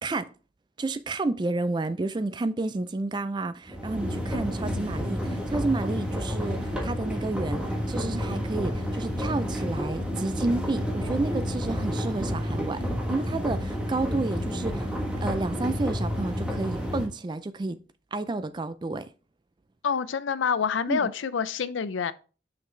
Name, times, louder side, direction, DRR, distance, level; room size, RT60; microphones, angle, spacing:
voice 1, 0.8-17.8 18.1-19.1 20.9-21.1, right 2 dB, 25° right, 0.3 m, -30 dB
sound 1, 3.7-17.1, equal, 5° right, 1.2 m, -30 dB
sound 2, 6.5-10.0, left 3 dB, 60° left, 0.8 m, -46 dB
voice 2, 19.8-22.1, left 6 dB, 85° left, 0.5 m, -27 dB
6.2 x 5.7 x 3.2 m
head